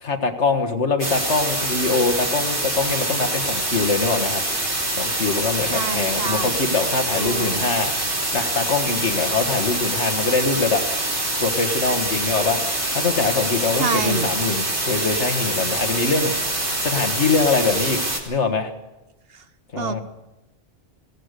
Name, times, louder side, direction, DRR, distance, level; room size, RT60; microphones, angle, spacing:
voice 1, 0.0-4.4 5.0-7.9 8.3-10.8 11.4-18.0 18.3-18.7 19.7-20.0, left 4 dB, 80° left, 6 dB, 2.1 m, -23 dB
sound 1, 1.0-18.2, right 1 dB, 75° right, 4.5 m, -25 dB
voice 2, 5.7-6.6 7.1-7.7 13.7-14.3 19.3-19.4 19.8-20.0, right 4 dB, 60° right, 10 dB, 1.3 m, -27 dB
22.5 x 17.5 x 6.8 m, 1.0 s
omnidirectional pair, 1.2 m